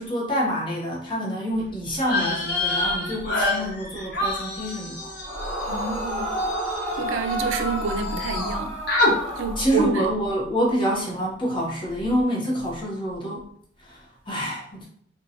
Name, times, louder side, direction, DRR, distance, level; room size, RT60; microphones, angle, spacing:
voice 1, 0.0-5.1 9.6-13.4 13.8-14.9, equal, 25° left, 0.7 m, -27 dB
sound 1, 2.0-7.6 7.8-8.6 8.9-9.1, left 2 dB, 55° left, 0.9 m, -27 dB
Yell / Screaming, 5.2-10.1, equal, 15° right, 1.2 m, -30 dB
voice 2, 5.7-6.2 7.0-8.7 9.4-10.1, right 4 dB, 80° right, 0.3 m, -27 dB
2.7 x 2.2 x 2.6 m
head